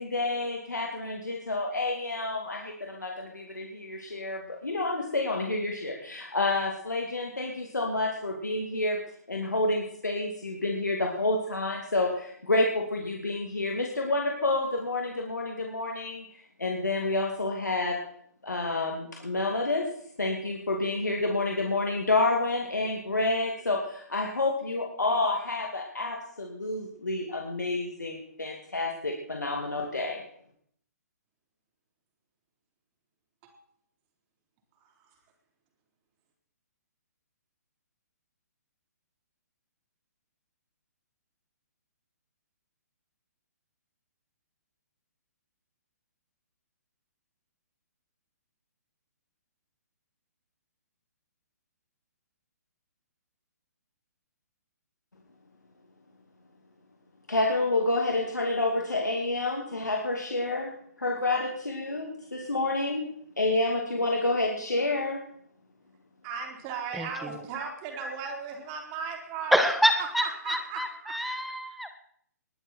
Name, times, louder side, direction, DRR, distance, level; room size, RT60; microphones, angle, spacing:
voice 1, 0.0-9.0 9.3-16.2 16.6-18.0 18.4-19.9 20.2-30.2 57.3-63.1 63.4-65.2, left 2 dB, 90° left, 1 dB, 2.5 m, -29 dB
voice 2, 66.2-69.7 70.2-71.2, right 5 dB, 30° right, 2 dB, 3.9 m, -37 dB
voice 3, 69.5-71.9, equal, ahead, 7 dB, 1.3 m, -26 dB
20.5 x 11.0 x 4.5 m, 0.67 s
figure-of-eight pair, 130°, 9 cm